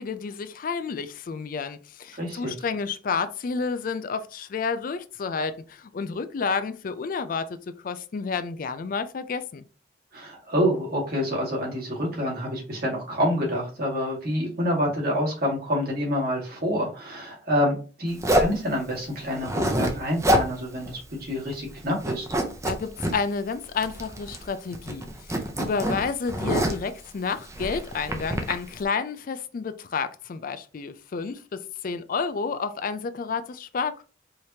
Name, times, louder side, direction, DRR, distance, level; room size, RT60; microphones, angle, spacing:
voice 1, 0.0-7.5 7.8-9.6 22.6-34.0, left 5 dB, 50° left, 0.4 m, -30 dB
voice 2, 2.2-2.5 10.1-22.3, equal, 55° right, 1.9 m, -27 dB
Zipper (clothing), 18.2-18.6 19.3-19.9 20.2-20.5 20.8-20.9 21.3-21.7 22.0-23.1 23.8-24.5 24.7-26.9 27.5-28.5, equal, 15° right, 0.6 m, -25 dB
4.9 x 2.9 x 2.7 m
head